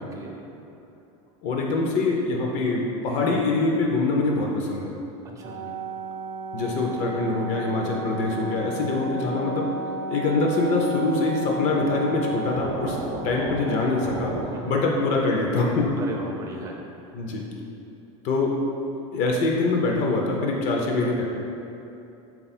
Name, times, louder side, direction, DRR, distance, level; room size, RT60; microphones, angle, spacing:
voice 1, 1.4-4.9 6.5-9.7 10.1-13.0 13.2-14.4 14.7-15.9 17.1-17.4 18.2-18.5 19.1-21.2, left 3 dB, 50° left, -1 dB, 0.5 m, -24 dB
voice 2, 5.4-5.7 14.5-14.9 16.0-16.8, right 2 dB, 20° right, 0 dB, 0.4 m, -37 dB
sound 1, 5.4-14.5, right 3 dB, 70° right, 0.6 m, -33 dB
3.5 x 2.3 x 4.0 m, 2.8 s
supercardioid pair, 140°, 16 cm